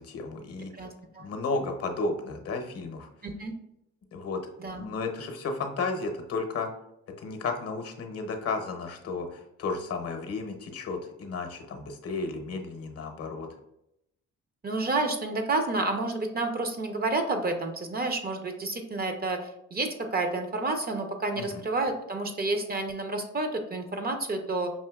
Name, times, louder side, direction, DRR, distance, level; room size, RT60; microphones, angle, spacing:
voice 1, 0.0-0.7 1.2-3.1 4.1-4.4 4.7-6.7 7.2-13.5 21.4-21.6, left 3 dB, 50° left, 5 dB, 0.7 m, -33 dB
voice 2, 0.7-1.3 3.2-3.5 4.6-4.8 14.6-24.7, right 2 dB, 30° right, 6 dB, 0.6 m, -30 dB
5.5 x 2.7 x 2.3 m, 0.81 s
cardioid pair, 90°, 30 cm